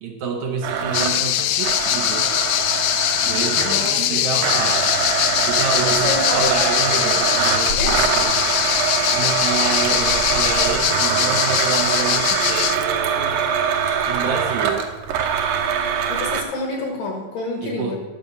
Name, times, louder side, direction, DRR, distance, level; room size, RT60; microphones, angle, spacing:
voice 1, 0.0-2.3 3.3-4.9 5.4-8.4 9.1-13.4 14.1-14.9 17.6-18.0, right 5 dB, 70° right, 1 dB, 2.1 m, -28 dB
Domestic sounds home sounds, 0.6-4.0 4.4-16.4, right 7 dB, 90° right, 2.5 m, -23 dB
voice 2, 0.8-1.2 3.6-4.0 5.9-7.2 7.7-8.0 16.1-18.0, left 3 dB, 60° left, 2 dB, 2.0 m, -28 dB
sound 1, 0.9-12.8, left 12 dB, 80° left, 2.1 m, -21 dB
10.5 x 7.4 x 5.4 m, 1.2 s
omnidirectional pair, 3.9 m